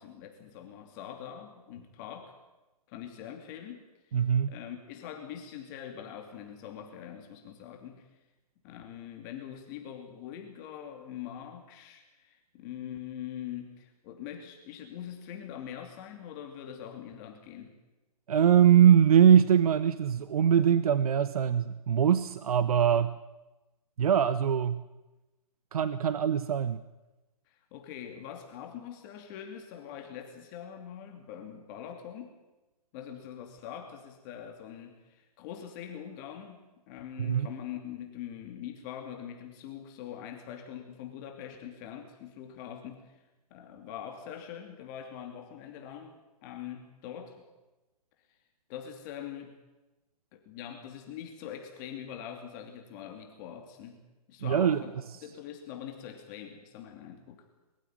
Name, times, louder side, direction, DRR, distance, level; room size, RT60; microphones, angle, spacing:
voice 1, 0.0-2.4 2.9-8.1 8.6-17.7 27.5-32.3 32.9-36.6 36.9-43.2 43.5-46.2 46.4-47.4 48.7-49.6 50.3-54.0 54.3-54.9 55.2-57.4, left 9 dB, 30° left, 3 dB, 2.8 m, -43 dB
voice 2, 4.1-4.5 18.3-23.2 24.0-24.8 25.7-26.8 37.2-37.5 54.4-54.8, right 9 dB, 65° right, 14 dB, 1.0 m, -22 dB
23.0 x 15.5 x 9.5 m, 1.1 s
hypercardioid pair, 155°, 20 cm